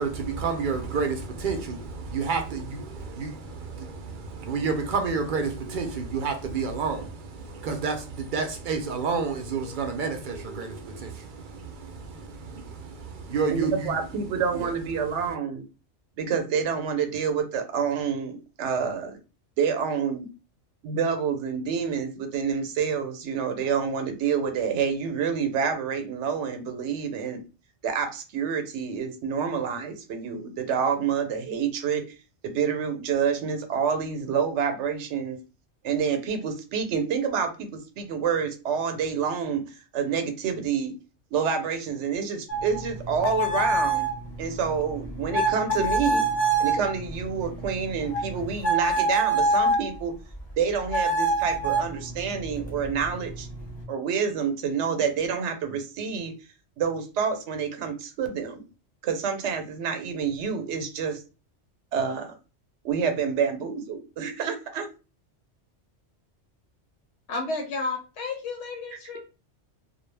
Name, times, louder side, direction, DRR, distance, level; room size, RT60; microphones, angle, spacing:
voice 1, 0.0-15.3, right 5 dB, 60° right, 0.6 m, -30 dB
voice 2, 13.5-15.6 16.2-19.2 19.6-20.3 20.8-27.4 27.8-32.0 32.4-35.4 35.8-40.9 41.3-44.1 44.4-46.3 46.6-50.1 50.6-53.5 53.9-56.3 56.8-58.6 59.0-61.2 61.9-62.3 62.8-64.9, right 6 dB, 85° right, 0.9 m, -28 dB
sound 1, 42.5-49.9 50.9-53.8, right 2 dB, 25° left, 0.9 m, -27 dB
voice 3, 67.3-69.2, left 3 dB, 85° left, 1.0 m, -32 dB
2.3 x 2.1 x 3.2 m
omnidirectional pair, 1.1 m